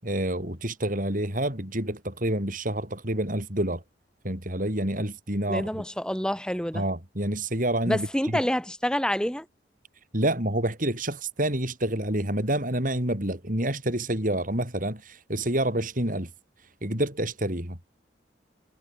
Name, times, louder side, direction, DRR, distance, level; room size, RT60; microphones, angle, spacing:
voice 1, 0.0-3.8 4.2-5.8 6.7-8.4 10.1-16.3 16.8-18.0, right 1 dB, 45° right, 7.1 m, -28 dB
voice 2, 5.5-6.9 7.9-9.5, equal, 5° left, 3.8 m, -27 dB
head